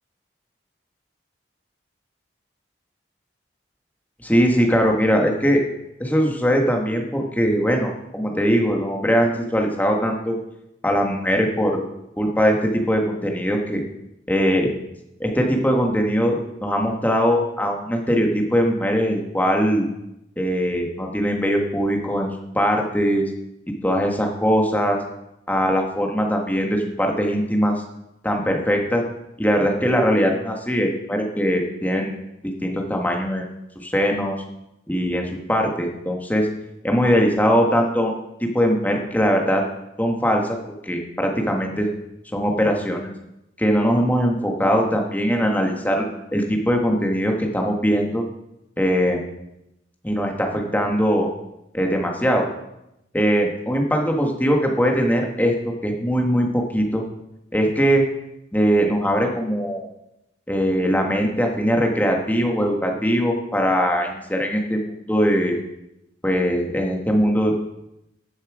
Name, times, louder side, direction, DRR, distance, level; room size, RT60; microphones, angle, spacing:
voice 1, 4.2-5.6 6.0-10.4 10.8-11.8 12.2-13.8 14.3-14.7 15.2-19.9 20.4-23.2 23.8-25.0 25.5-27.7 28.2-29.0 29.4-32.2 32.4-33.5 33.8-34.4 34.9-36.5 36.8-39.6 40.0-40.4 40.8-41.9 42.3-43.1 43.6-46.0 46.3-48.2 48.8-49.2 50.0-51.3 51.7-52.5 53.1-57.0 57.5-58.0 58.5-59.9 60.5-65.6 66.2-67.5, equal, 10° left, 1 dB, 1.6 m, -21 dB
13.5 x 7.4 x 4.9 m, 0.87 s
head